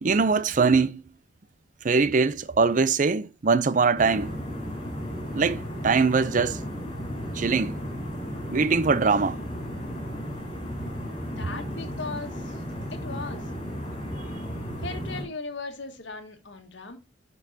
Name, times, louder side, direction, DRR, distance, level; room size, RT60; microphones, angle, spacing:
voice 1, 0.0-1.0 1.8-4.3 5.3-6.6 7.3-7.8 8.5-9.4, right 4 dB, 40° right, 0.5 m, -22 dB
sound 1, 4.0-15.2, equal, 30° left, 4.5 m, -34 dB
voice 2, 11.3-12.6 12.9-13.5 14.8-17.0, left 3 dB, 70° left, 1.6 m, -38 dB
11.0 x 5.4 x 2.7 m
head